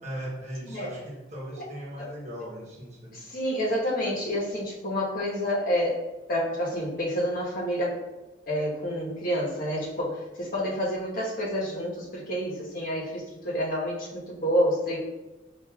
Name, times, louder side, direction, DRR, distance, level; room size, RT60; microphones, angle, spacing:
voice 1, 0.0-3.2, equal, 40° right, -3 dB, 1.1 m, -38 dB
voice 2, 3.1-6.0 6.3-8.0 8.5-15.0, equal, 50° left, -4 dB, 1.1 m, -28 dB
7.3 x 2.6 x 2.3 m, 1.1 s
head